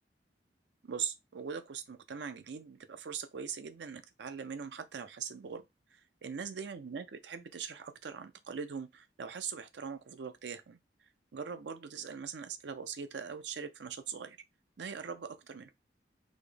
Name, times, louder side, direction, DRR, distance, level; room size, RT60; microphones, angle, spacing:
voice 1, 0.8-5.6 5.9-10.8 11.3-14.4 14.8-15.7, right 6 dB, 75° right, 0.5 m, -41 dB
4.1 x 2.9 x 3.3 m
head